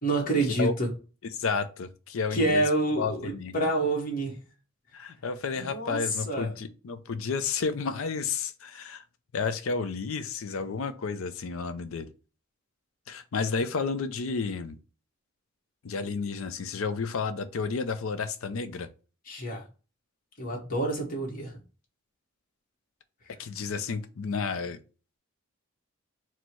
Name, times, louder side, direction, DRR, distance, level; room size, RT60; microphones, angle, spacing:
voice 1, 0.0-0.9 2.3-4.4 5.5-6.5 19.3-19.6 20.4-21.6, right 2 dB, 40° left, 1.1 m, -28 dB
voice 2, 1.2-2.6 3.0-3.5 4.9-9.0 9.3-12.1 13.1-14.8 15.8-18.9 23.4-24.8, left 5 dB, 70° left, 0.5 m, -31 dB
4.3 x 2.1 x 4.4 m
head